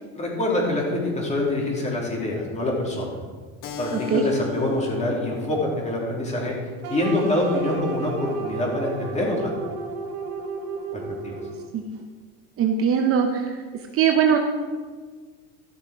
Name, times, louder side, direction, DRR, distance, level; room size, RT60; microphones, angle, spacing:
voice 1, 0.2-3.2 3.8-6.5 6.9-9.5 10.9-11.4, left 1 dB, 20° left, -2 dB, 3.1 m, -25 dB
Keyboard (musical), 3.6-8.7, left 5 dB, 75° left, 1.7 m, -39 dB
sound 1, 6.8-11.8, right 4 dB, 70° right, 1.9 m, -33 dB
voice 2, 12.6-13.5 13.9-14.4, right 7 dB, 40° right, 4 dB, 1.0 m, -20 dB
13.5 x 6.6 x 4.9 m, 1.5 s
cardioid pair, 145°, 36 cm